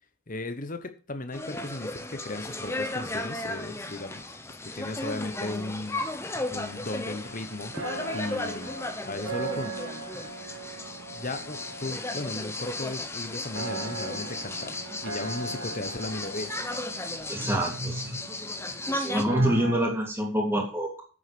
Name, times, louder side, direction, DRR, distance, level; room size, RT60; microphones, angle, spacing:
voice 1, 0.3-8.8 9.0-9.8 11.1-14.8 15.0-16.5, left 2 dB, 35° left, 1.1 m, -36 dB
sound 1, 1.3-19.2, left 2 dB, 10° left, 0.9 m, -35 dB
sound 2, 6.5-19.8, right 3 dB, 60° right, 1.9 m, -40 dB
voice 2, 17.3-18.2 18.9-21.0, right 1 dB, 10° right, 2.9 m, -26 dB
8.2 x 7.9 x 6.9 m
head